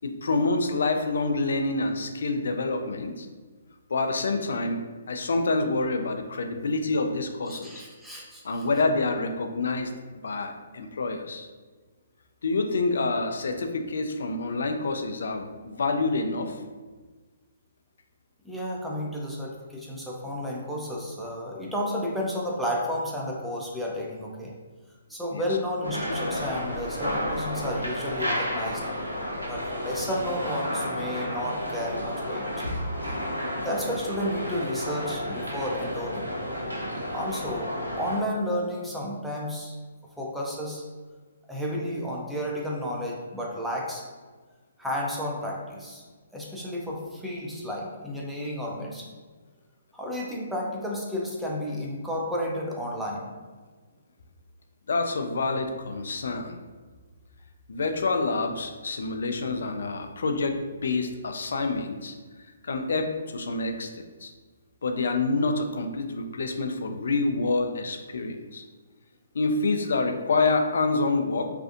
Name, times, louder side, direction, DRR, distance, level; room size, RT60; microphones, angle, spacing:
voice 1, 0.0-3.3 3.9-7.8 8.4-9.9 10.2-11.5 12.4-16.6 25.3-25.4 54.9-56.6 57.7-62.1 62.6-64.3 64.8-68.6 69.3-71.5, left 3 dB, 65° left, 6 dB, 0.3 m, -27 dB
voice 2, 7.5-8.7 18.4-24.5 25.1-28.8 29.5-32.5 33.6-36.3 37.1-39.7 40.2-40.8 41.5-44.0 44.8-46.0 46.3-49.1 49.9-53.3, equal, ahead, -4 dB, 0.5 m, -32 dB
sound 1, 25.8-38.2, equal, 90° right, 0.6 m, -32 dB
2.5 x 2.3 x 2.5 m, 1.4 s
figure-of-eight pair, 135°, 0 cm